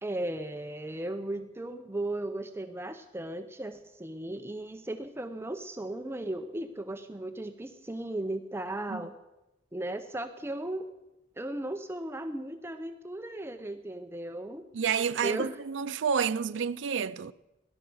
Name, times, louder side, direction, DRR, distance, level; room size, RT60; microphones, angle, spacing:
voice 1, 0.0-9.1 9.7-10.9 11.4-14.7 15.2-15.6, right 1 dB, 15° right, 0.7 m, -36 dB
voice 2, 14.7-17.3, right 6 dB, 80° right, 0.4 m, -29 dB
16.5 x 11.5 x 7.0 m
head